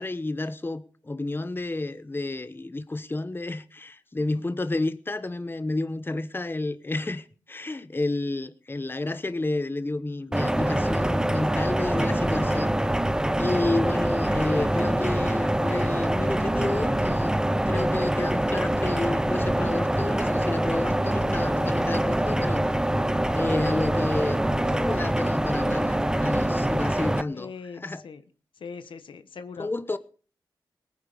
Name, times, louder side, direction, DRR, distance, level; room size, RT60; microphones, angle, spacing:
voice 1, 0.0-12.7 13.4-22.7 23.3-28.0 29.6-30.0, left 2 dB, 25° left, 1.0 m, -30 dB
sound 1, 10.3-27.2, right 1 dB, 10° right, 0.8 m, -25 dB
sound 2, 21.0-22.1 23.4-24.7, left 4 dB, 55° left, 5.9 m, -46 dB
voice 2, 27.3-28.2 28.6-29.7, left 5 dB, 80° left, 1.3 m, -41 dB
19.0 x 9.7 x 5.1 m
cardioid pair, 55°, 9 cm